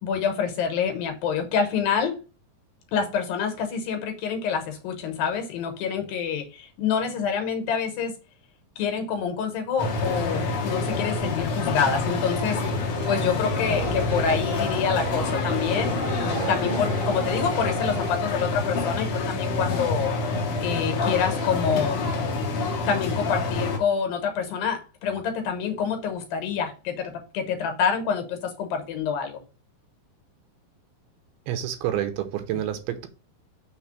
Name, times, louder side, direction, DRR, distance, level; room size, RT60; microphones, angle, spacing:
voice 1, 0.0-2.1 2.9-8.1 8.8-20.1 20.6-22.0 22.9-29.4, left 6 dB, 70° left, 5 dB, 2.7 m, -27 dB
sound 1, 9.8-23.8, left 3 dB, 90° left, 1.2 m, -27 dB
sound 2, 12.5-18.1, right 5 dB, 50° right, 2.9 m, -36 dB
voice 2, 31.5-33.1, right 11 dB, 80° right, 8 dB, 2.7 m, -28 dB
6.3 x 3.4 x 5.9 m, 0.33 s
omnidirectional pair, 4.6 m